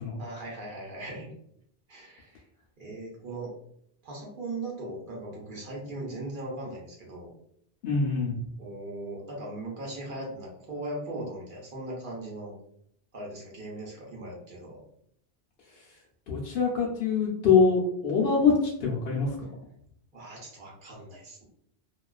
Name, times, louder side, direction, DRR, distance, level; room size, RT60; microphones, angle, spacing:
voice 1, 0.2-1.3 1.9-2.4 2.8-3.5 4.0-7.3 8.6-12.5 13.1-14.8 20.1-21.4, right 2 dB, 50° right, -3 dB, 0.9 m, -39 dB
voice 2, 7.8-8.4 16.3-18.5 18.8-19.5, left 5 dB, 65° left, -3 dB, 0.7 m, -24 dB
2.3 x 2.3 x 2.3 m, 0.70 s
omnidirectional pair, 1.1 m